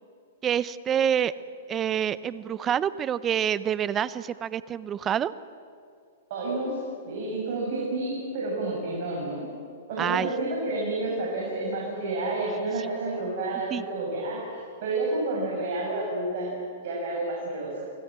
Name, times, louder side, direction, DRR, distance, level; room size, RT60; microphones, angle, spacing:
voice 1, 0.4-1.3 1.7-5.3 10.0-10.3 13.7-13.8, right 9 dB, 25° right, 17 dB, 0.9 m, -27 dB
voice 2, 6.3-9.5 9.9-16.6 16.8-17.8, right 2 dB, 55° right, -3 dB, 7.6 m, -30 dB
29.5 x 20.0 x 7.7 m, 2.4 s
hypercardioid pair, 120°, 0 cm